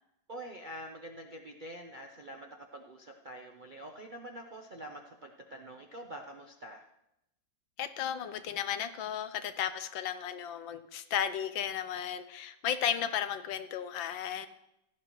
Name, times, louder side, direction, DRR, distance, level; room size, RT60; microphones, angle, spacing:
voice 1, 0.3-6.8, right 1 dB, 50° right, 1 dB, 0.5 m, -46 dB
voice 2, 7.8-14.5, left 9 dB, 80° left, 11 dB, 1.5 m, -34 dB
16.0 x 11.5 x 3.1 m, 0.84 s
omnidirectional pair, 2.1 m